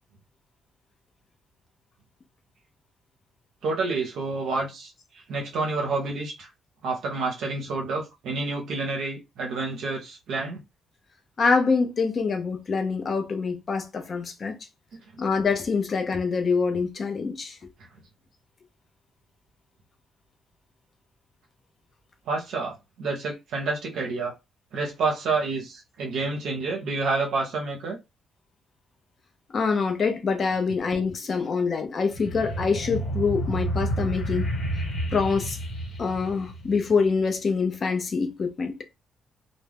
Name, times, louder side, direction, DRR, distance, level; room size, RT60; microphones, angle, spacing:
voice 1, 3.6-6.5 6.8-10.6 14.9-15.2 22.3-24.3 24.7-28.0 30.7-30.8, right 3 dB, 75° right, 0.6 m, -29 dB
voice 2, 11.4-14.5 15.2-17.6 29.5-34.5 35.1-35.6 36.0-38.8, left 5 dB, 40° left, 0.5 m, -25 dB
sound 1, 32.1-37.1, right 1 dB, 55° left, 0.9 m, -30 dB
2.2 x 2.0 x 3.3 m
cardioid pair, 100°, 0 cm